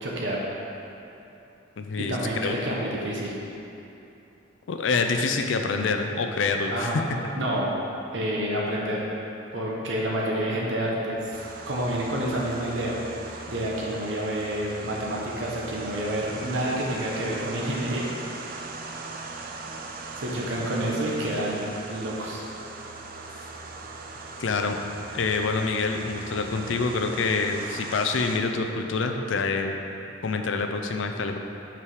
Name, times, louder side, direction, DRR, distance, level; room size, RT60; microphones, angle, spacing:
voice 1, 0.0-0.4 2.0-3.3 6.7-7.1 7.3-7.7 8.1-9.0 9.5-11.3 11.7-13.0 13.2-18.1 20.2-21.6 21.9-22.4, right 1 dB, 70° right, -3 dB, 0.9 m, -28 dB
voice 2, 1.8-2.2 2.4-2.6 4.7-7.0 24.4-24.8 25.1-29.8 30.2-31.4, left 4 dB, 75° left, 5 dB, 0.4 m, -26 dB
sound 1, 11.3-28.4, right 3 dB, 45° right, 0.4 m, -40 dB
5.9 x 4.8 x 4.8 m, 2.8 s
head